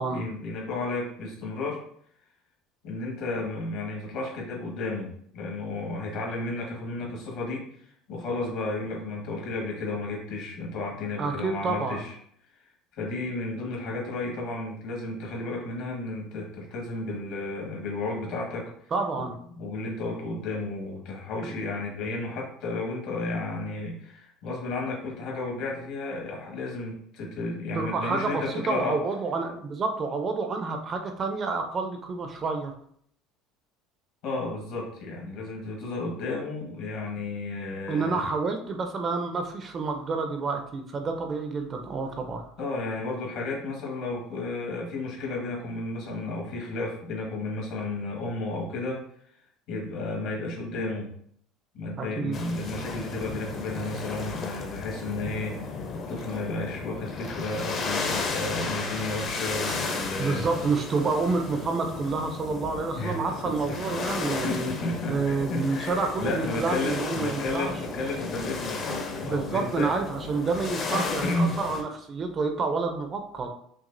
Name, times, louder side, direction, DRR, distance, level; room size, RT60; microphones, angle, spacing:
voice 1, 0.1-1.8 2.8-7.7 8.1-12.1 12.9-18.7 19.2-19.3 19.5-29.0 34.2-38.2 42.6-49.0 49.7-51.1 51.7-60.5 62.9-63.9 64.4-69.9 70.9-71.5, left 2 dB, 60° left, -2 dB, 1.4 m, -33 dB
voice 2, 11.2-12.0 18.9-19.4 21.4-21.6 27.8-32.7 37.9-42.4 52.0-52.4 60.2-64.7 65.1-67.7 68.9-73.5, right 4 dB, 25° right, 5 dB, 0.4 m, -29 dB
sound 1, 52.3-71.8, left 4 dB, 35° left, 0.6 m, -34 dB
5.9 x 2.3 x 2.6 m, 0.65 s
cardioid pair, 155°, 0 cm